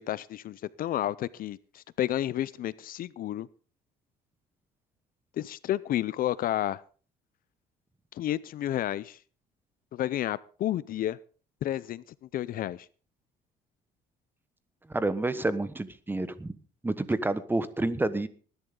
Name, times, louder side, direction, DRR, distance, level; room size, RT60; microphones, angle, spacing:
voice 1, 0.0-3.5 5.4-6.8 8.1-9.2 9.9-11.2 11.6-12.0 12.3-12.9, left 12 dB, 55° left, 0.6 m, -31 dB
voice 2, 14.9-16.5 16.8-18.3, right 2 dB, 10° right, 1.2 m, -29 dB
20.0 x 11.0 x 3.8 m
cardioid pair, 110°, 17 cm